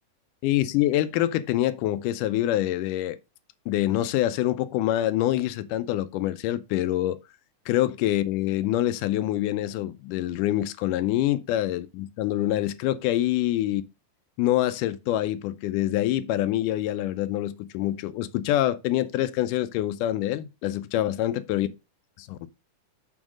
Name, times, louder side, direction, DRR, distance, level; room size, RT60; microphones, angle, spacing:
voice 1, 0.4-3.2 3.7-7.2 7.7-13.8 14.4-21.7 22.2-22.4, left 13 dB, 85° left, 2.2 m, -25 dB
7.1 x 3.7 x 6.1 m
omnidirectional pair, 3.7 m